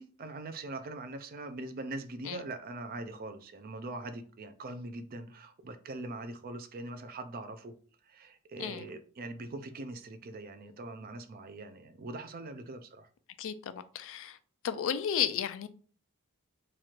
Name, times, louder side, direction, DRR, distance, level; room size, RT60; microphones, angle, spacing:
voice 1, 0.0-7.7 8.0-13.1, right 2 dB, 45° right, 0.5 m, -42 dB
voice 2, 13.4-14.4 14.6-15.7, left 9 dB, 65° left, 0.4 m, -33 dB
3.1 x 2.4 x 4.3 m
head